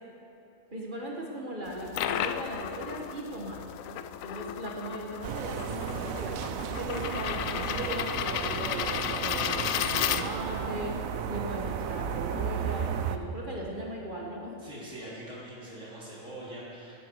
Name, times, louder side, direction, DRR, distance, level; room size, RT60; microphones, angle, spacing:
voice 1, 0.7-3.6 4.2-10.9 11.3-14.5, right 1 dB, 40° right, -2 dB, 1.7 m, -38 dB
sound 1, 1.7-10.7, left 10 dB, 85° left, 1.0 m, -33 dB
sound 2, 5.2-13.2, right 8 dB, 85° right, 1.1 m, -34 dB
voice 2, 14.6-17.0, right 1 dB, 65° right, -7 dB, 3.9 m, -43 dB
16.5 x 13.5 x 4.7 m, 2.7 s
omnidirectional pair, 1.4 m